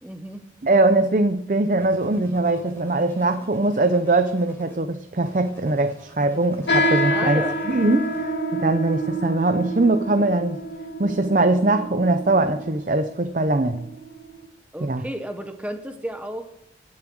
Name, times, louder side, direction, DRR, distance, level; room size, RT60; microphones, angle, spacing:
voice 1, 0.0-0.4 7.1-7.6 14.7-16.5, equal, 5° right, 1.1 m, -32 dB
voice 2, 0.6-10.6 11.0-13.9 14.8-15.0, right 2 dB, 45° right, 0.6 m, -21 dB
sound 1, 1.8-4.8 5.2-8.2, equal, 15° left, 4.0 m, -48 dB
sound 2, 6.7-14.5, right 1 dB, 75° left, 2.0 m, -27 dB
19.0 x 7.4 x 6.3 m
head